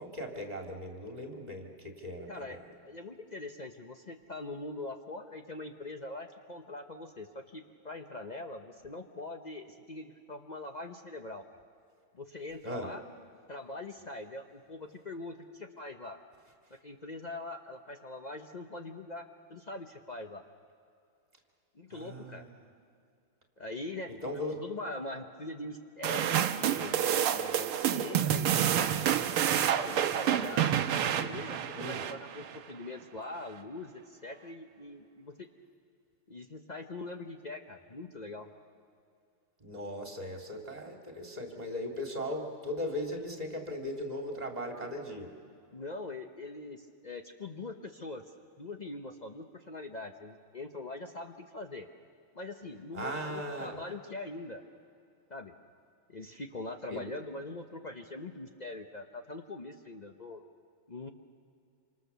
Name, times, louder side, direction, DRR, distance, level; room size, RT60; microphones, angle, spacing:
voice 1, 0.0-2.6 12.6-12.9 21.9-22.6 24.1-24.6 31.7-32.0 39.6-45.3 52.9-53.8 56.9-57.0, equal, 20° right, 2 dB, 2.6 m, -38 dB
voice 2, 2.3-11.4 12.1-13.0 13.5-16.2 16.8-20.4 21.7-22.4 23.6-24.1 24.6-28.9 29.8-30.7 31.1-35.5 36.3-38.5 45.7-48.2 48.6-51.9 52.3-54.6 55.3-55.5 56.1-60.4 60.9-61.1, left 2 dB, 90° left, 5 dB, 0.3 m, -42 dB
sound 1, 26.0-32.6, right 10 dB, 85° right, 1.8 m, -29 dB
27.0 x 26.0 x 6.9 m, 2.4 s
omnidirectional pair, 2.4 m